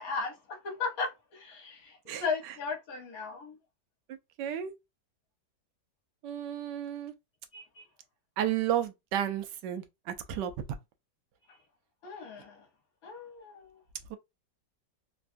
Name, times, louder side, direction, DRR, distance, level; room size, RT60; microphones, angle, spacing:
voice 1, 0.0-3.6 7.5-7.8 11.5-11.6 12.0-12.7 13.0-13.8, left 4 dB, 60° left, 1.3 m, -37 dB
voice 2, 2.1-2.5 4.1-4.7 6.2-7.1 8.4-10.5 14.1-14.2, right 10 dB, 80° right, 1.2 m, -33 dB
3.3 x 2.3 x 2.5 m
omnidirectional pair, 1.9 m